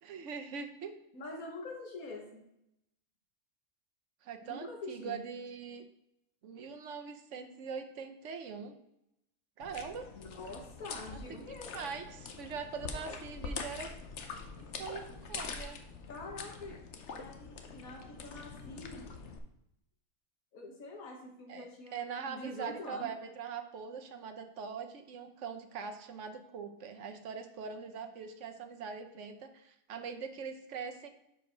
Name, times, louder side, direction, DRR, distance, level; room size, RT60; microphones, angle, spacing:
voice 1, 0.0-0.9 4.2-5.8 6.4-8.7 9.6-10.1 11.3-11.5 11.7-13.9 14.6-15.8 21.5-21.7 21.9-31.1, right 6 dB, 60° right, 6 dB, 1.1 m, -42 dB
voice 2, 1.1-2.4 4.4-5.2 10.2-11.9 16.1-16.8 17.2-19.1 20.5-23.1, left 2 dB, 80° left, 1 dB, 1.8 m, -45 dB
sound 1, 9.6-19.4, left 4 dB, 60° left, 1.0 m, -44 dB
6.2 x 5.1 x 5.2 m, 0.82 s
omnidirectional pair, 1.5 m